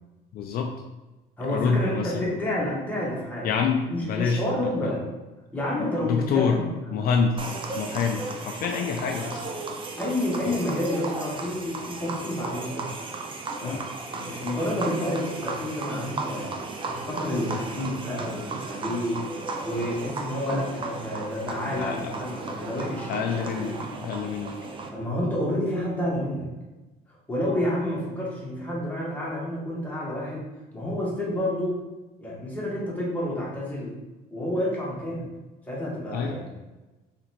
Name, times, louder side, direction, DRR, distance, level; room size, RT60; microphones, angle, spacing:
voice 1, 0.3-0.7 1.5-2.3 3.4-4.4 4.8-4.9 5.8-6.6 6.9-9.4 10.5-10.6 13.6-13.8 21.6-22.1 23.1-24.6 36.1-36.4, left 6 dB, 60° left, 3 dB, 0.4 m, -27 dB
voice 2, 1.4-3.5 3.9-5.0 5.5-7.1 10.0-12.9 13.6-13.8 14.1-16.5 16.9-19.2 19.6-23.7 24.9-26.5 27.1-30.4 30.7-31.8 32.2-34.0 34.3-35.2 35.7-36.6, left 1 dB, 10° left, -6 dB, 1.4 m, -29 dB
sound 1, 7.4-24.9, right 3 dB, 30° right, 0.5 m, -35 dB
3.8 x 3.3 x 2.9 m, 1.1 s
cardioid pair, 110°, 17 cm